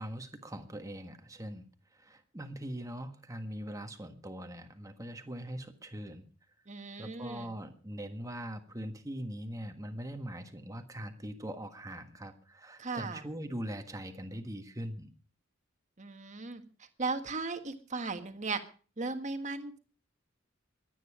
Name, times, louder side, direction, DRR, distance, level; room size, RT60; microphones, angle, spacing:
voice 1, 0.0-1.7 1.9-6.3 7.0-15.1, equal, 15° right, 7 dB, 1.5 m, -41 dB
voice 2, 6.7-7.5 12.8-13.2 16.0-16.6 17.0-18.6 19.0-19.8, right 3 dB, 40° right, 8 dB, 1.6 m, -36 dB
23.0 x 9.4 x 4.9 m, 0.39 s
head